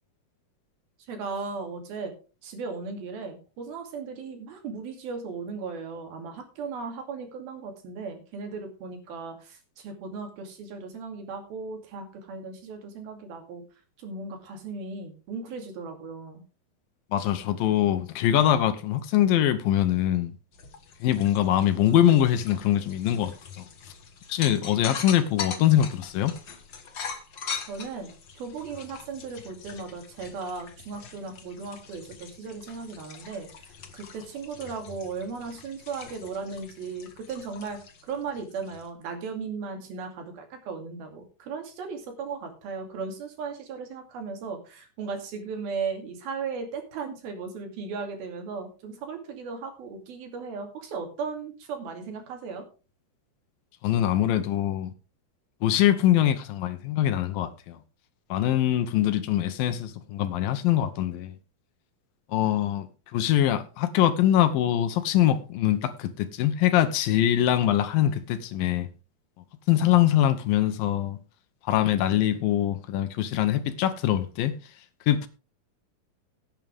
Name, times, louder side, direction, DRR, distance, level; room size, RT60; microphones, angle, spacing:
voice 1, 1.1-2.1 2.4-13.6 14.0-16.4 27.7-52.7, right 5 dB, 75° right, 4.3 m, -36 dB
voice 2, 17.1-20.3 21.0-23.6 24.3-26.3 53.8-54.9 55.6-57.8 58.3-61.3 62.3-62.9 63.1-68.9 69.7-71.2 71.6-74.5 75.1-75.3, left 11 dB, 75° left, 2.6 m, -23 dB
sound 1, 20.5-38.9, left 6 dB, 55° left, 1.3 m, -42 dB
17.0 x 9.0 x 3.5 m
omnidirectional pair, 4.3 m